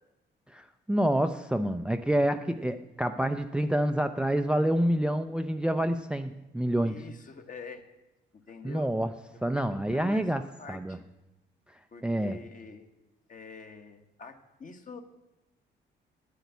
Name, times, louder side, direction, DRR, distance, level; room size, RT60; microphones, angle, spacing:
voice 1, 0.5-7.0 8.6-9.1 9.4-10.4 10.7-11.0 12.0-12.4, right 1 dB, 5° right, 9 dB, 0.4 m, -27 dB
voice 2, 6.8-7.8 8.3-8.9 9.5-9.6 9.9-10.3 10.6-11.0 11.9-12.9 13.3-15.0, left 5 dB, 40° left, 6 dB, 1.4 m, -45 dB
9.4 x 8.2 x 8.2 m, 1.0 s
cardioid pair, 90°, 20 cm